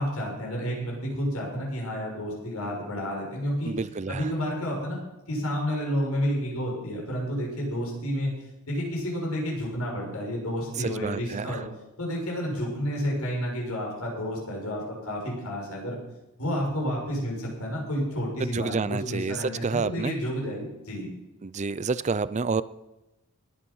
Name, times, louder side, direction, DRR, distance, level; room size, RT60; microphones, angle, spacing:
voice 1, 0.0-3.7 4.1-5.0 5.3-8.3 8.7-11.6 12.0-16.0 16.4-21.1, equal, 85° left, -2 dB, 6.5 m, -30 dB
voice 2, 3.6-4.3 10.8-11.6 18.4-20.2 21.4-22.6, right 4 dB, 30° right, 17 dB, 0.5 m, -29 dB
20.5 x 8.7 x 5.5 m, 0.98 s
head